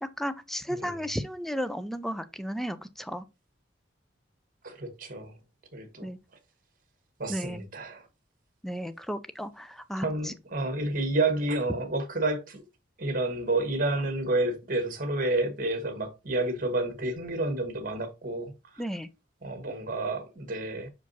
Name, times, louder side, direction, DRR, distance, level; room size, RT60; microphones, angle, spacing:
voice 1, 0.0-3.2 6.0-6.2 7.3-7.6 8.6-10.3 18.8-19.1, equal, ahead, 0.4 m, -34 dB
voice 2, 4.6-5.4 5.7-6.1 7.2-8.1 10.0-12.6 13.0-18.8 19.4-20.9, right 2 dB, 45° right, 1.5 m, -30 dB
5.9 x 4.8 x 4.1 m
head